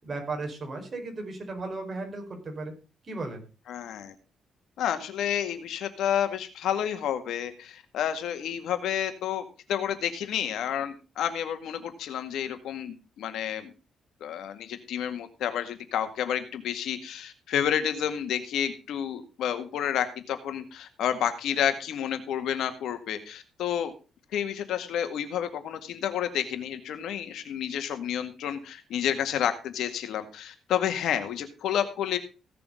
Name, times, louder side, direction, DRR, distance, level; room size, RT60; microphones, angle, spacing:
voice 1, 0.0-2.7 3.0-3.4, right 3 dB, 35° right, 3 dB, 5.1 m, -35 dB
voice 2, 3.7-4.1 4.8-13.7 14.2-23.9 24.3-32.2, left 9 dB, 80° left, 8 dB, 2.0 m, -30 dB
16.5 x 7.0 x 5.1 m, 0.32 s
cardioid pair, 105°, 0 cm